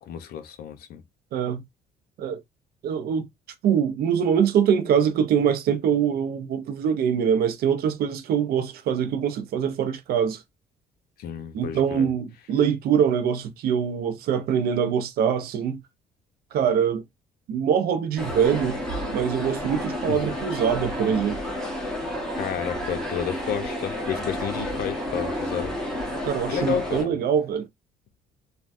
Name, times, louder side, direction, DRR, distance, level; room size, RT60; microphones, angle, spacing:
voice 1, 0.0-1.0 11.2-12.1 20.1-20.2 22.4-25.7 26.5-27.1, left 8 dB, 65° left, 0.7 m, -31 dB
voice 2, 1.3-1.6 2.2-2.4 2.8-3.3 3.6-10.4 11.5-15.8 16.5-17.0 17.5-18.8 19.1-21.4 26.3-27.7, right 8 dB, 65° right, 0.6 m, -23 dB
sound 1, 18.2-27.0, left 1 dB, 5° left, 1.2 m, -31 dB
3.3 x 2.2 x 2.5 m
cardioid pair, 110°, 17 cm